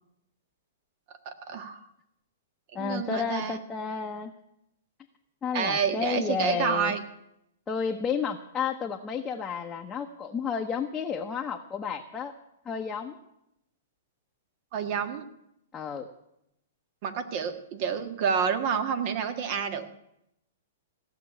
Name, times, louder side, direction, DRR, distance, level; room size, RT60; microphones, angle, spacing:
voice 1, 1.2-1.8 2.7-3.6 5.5-7.0 14.7-15.2 17.0-19.8, right 7 dB, 45° right, 9 dB, 1.6 m, -29 dB
voice 2, 2.7-4.3 5.4-7.0 7.7-12.3 12.6-13.2 15.7-16.1, left 6 dB, 15° left, 0 dB, 1.0 m, -31 dB
16.5 x 6.9 x 9.8 m, 0.81 s
hypercardioid pair, 140°, 0 cm